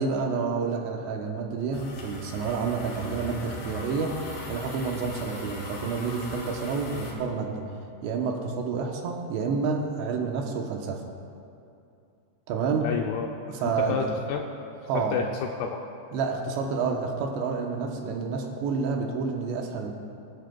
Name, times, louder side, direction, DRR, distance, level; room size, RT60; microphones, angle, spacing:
voice 1, 0.0-4.2 4.5-7.6 8.0-11.0 12.5-12.9 13.5-14.1 14.9-15.2 16.1-19.9, right 5 dB, 75° right, 1 dB, 3.0 m, -29 dB
sound 1, 1.7-7.1, left 3 dB, 65° left, 3.9 m, -40 dB
voice 2, 12.8-13.3 13.6-14.5 14.9-15.8, left 6 dB, 85° left, 2 dB, 2.3 m, -30 dB
23.5 x 11.5 x 2.3 m, 2.6 s
omnidirectional pair, 5.3 m